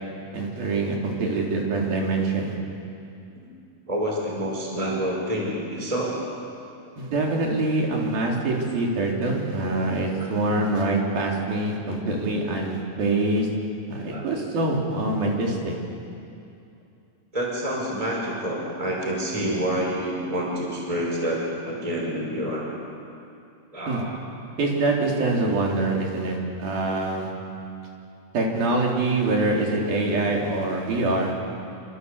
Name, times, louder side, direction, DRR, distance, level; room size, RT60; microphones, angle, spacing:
voice 1, 0.3-2.6 7.0-13.5 13.9-15.7 23.9-24.0 24.6-27.3 28.3-31.3, right 2 dB, 85° right, -1 dB, 5.7 m, -24 dB
voice 2, 3.9-6.1 14.1-14.3 17.3-22.6 23.7-24.0, equal, 10° right, -2 dB, 5.3 m, -28 dB
27.0 x 26.5 x 8.4 m, 2.6 s
omnidirectional pair, 4.1 m